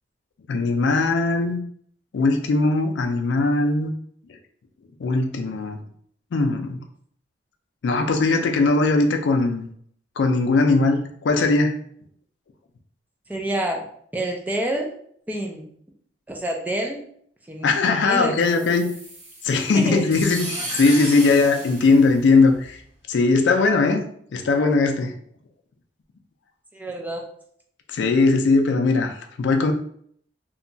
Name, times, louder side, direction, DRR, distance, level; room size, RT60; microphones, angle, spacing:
voice 1, 0.5-1.6 2.1-3.9 5.0-5.8 6.3-6.8 7.8-9.7 10.2-11.8 17.6-18.9 19.4-22.8 23.1-24.0 24.3-25.1 27.9-29.7, left 3 dB, 75° left, 5 dB, 0.4 m, -19 dB
voice 2, 13.3-13.8 14.1-14.9 15.3-15.7 16.3-17.0 17.5-17.7 18.0-18.7 19.7-20.0 26.7-27.2, right 1 dB, 10° right, 0 dB, 0.3 m, -27 dB
sound 1, 18.4-22.8, right 1 dB, 35° right, 0.9 m, -34 dB
2.8 x 2.2 x 2.6 m, 0.64 s
head